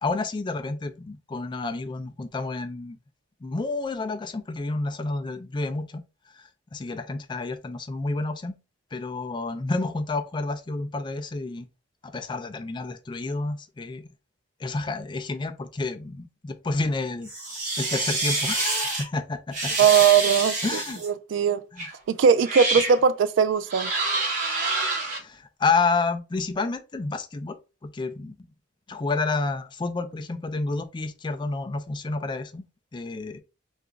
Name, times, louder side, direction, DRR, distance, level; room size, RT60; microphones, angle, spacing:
voice 1, 0.0-3.0 3.4-6.0 6.3-8.6 8.9-11.7 12.0-14.1 14.6-19.7 20.6-21.0 21.7-21.9 25.0-28.5 28.9-32.7 32.9-33.4, left 3 dB, 25° left, 0.3 m, -30 dB
sound 1, 17.3-19.0 19.5-21.1 21.8-21.9 22.4-23.0 23.7-25.2, right 2 dB, 40° right, 1.4 m, -27 dB
voice 2, 19.8-20.5 21.0-21.6 22.1-23.9, right 7 dB, 80° right, 0.3 m, -19 dB
2.9 x 2.5 x 3.3 m
head